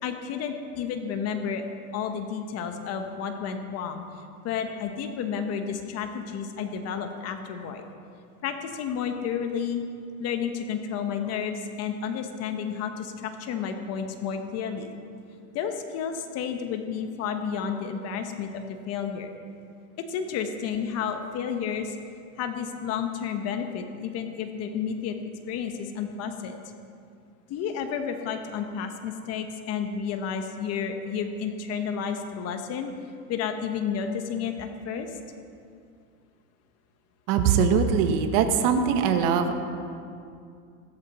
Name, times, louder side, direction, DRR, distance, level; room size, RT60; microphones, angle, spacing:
voice 1, 0.0-1.6 1.9-4.0 4.4-7.9 8.4-9.8 10.2-15.0 15.5-19.3 20.1-22.0 22.4-25.2 25.5-26.5 27.5-32.9 33.3-35.1, left 7 dB, 35° left, 6 dB, 1.1 m, -31 dB
voice 2, 37.3-39.5, right 6 dB, 45° right, 6 dB, 1.4 m, -22 dB
15.0 x 13.5 x 4.3 m, 2.4 s
supercardioid pair, 135°, 43 cm